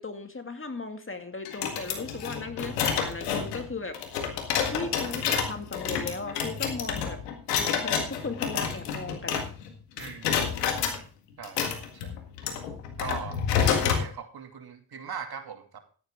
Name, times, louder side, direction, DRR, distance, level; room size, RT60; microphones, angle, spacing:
voice 1, 0.0-4.0 4.7-7.2 7.6-9.5, left 3 dB, 25° left, 7 dB, 2.2 m, -37 dB
sound 1, 1.4-9.7 10.0-11.0 11.4-14.1, left 7 dB, 90° left, 1.9 m, -29 dB
voice 2, 10.0-10.5 11.4-12.2 13.0-13.4 13.7-15.8, right 7 dB, 50° right, 6 dB, 2.6 m, -40 dB
14.0 x 10.5 x 3.6 m, 0.39 s
hypercardioid pair, 45°, 47 cm